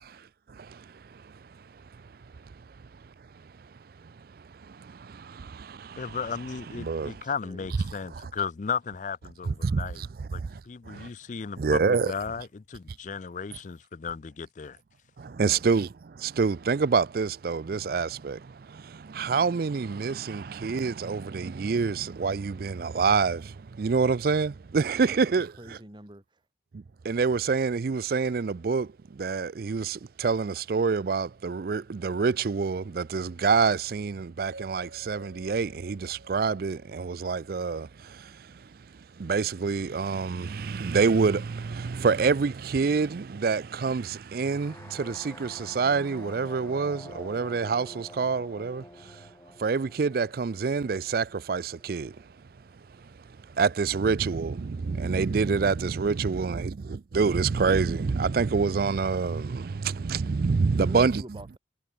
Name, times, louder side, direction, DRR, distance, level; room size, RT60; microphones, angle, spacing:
voice 1, 0.0-3.7 4.0-6.2 6.8-7.2 8.1-8.3 9.5-10.6 10.9-11.1 11.6-12.1 15.2-25.8 26.7-49.3 49.6-52.3 52.8-61.2, right 5 dB, 55° right, 0.4 m, -27 dB
voice 2, 6.0-10.0 10.3-14.8, left 6 dB, 40° left, 0.4 m, -35 dB
voice 3, 7.0-7.8 15.4-15.6 25.0-25.3 25.6-26.4 60.8-61.6, right 1 dB, 25° right, 2.3 m, -46 dB
sound 1, 34.5-38.6, right 2 dB, 70° right, 4.4 m, -50 dB
sound 2, 44.4-52.3, left 1 dB, 15° left, 3.8 m, -48 dB
head